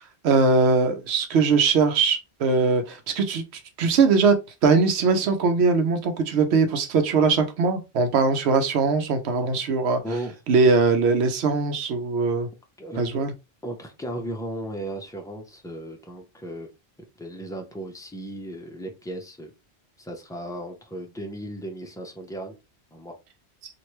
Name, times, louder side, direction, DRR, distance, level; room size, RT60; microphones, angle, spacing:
voice 1, 0.2-4.3 4.6-10.0 10.5-12.5 13.0-13.3, right 4 dB, 85° right, 0.9 m, -21 dB
voice 2, 10.0-10.4 12.8-13.2 13.6-16.7 17.2-19.5 20.0-22.5 22.9-23.1, right 1 dB, 5° left, 0.5 m, -35 dB
3.1 x 2.5 x 2.9 m
omnidirectional pair, 1.1 m